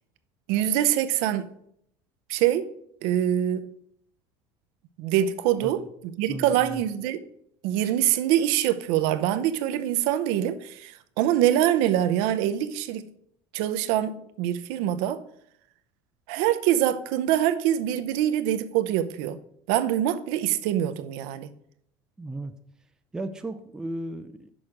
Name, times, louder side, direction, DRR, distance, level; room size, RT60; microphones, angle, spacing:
voice 1, 0.5-1.5 2.3-2.7 3.0-3.7 5.0-7.2 7.6-13.1 13.5-15.2 16.3-19.4 19.7-21.5, right 11 dB, 70° right, 0.6 m, -24 dB
voice 2, 6.3-6.8 22.2-22.5 23.1-24.5, right 1 dB, 5° right, 0.4 m, -35 dB
6.3 x 5.0 x 5.9 m
cardioid pair, 155°, 10 cm